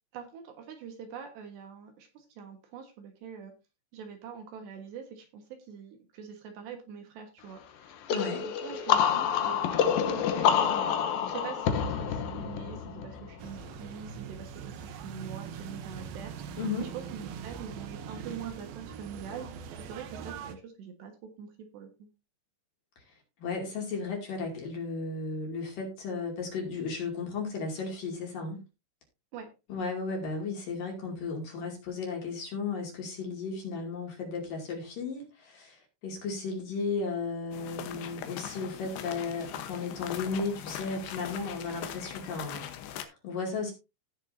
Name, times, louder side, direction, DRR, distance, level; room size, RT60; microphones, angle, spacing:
voice 1, 0.1-3.5 3.9-21.1 21.4-22.1 29.3-29.5, right 7 dB, 70° right, 4 dB, 3.4 m, -44 dB
sound 1, 8.1-13.6, left 8 dB, 85° left, 2.0 m, -27 dB
voice 2, 8.1-8.4 16.6-16.9 23.4-28.6 29.7-43.7, left 4 dB, 50° left, 0 dB, 3.7 m, -35 dB
sound 2, 13.4-20.5, right 7 dB, 85° right, 2.0 m, -42 dB
sound 3, 37.5-43.0, left 10 dB, 70° left, 2.7 m, -41 dB
17.0 x 6.6 x 2.7 m, 0.27 s
omnidirectional pair, 5.7 m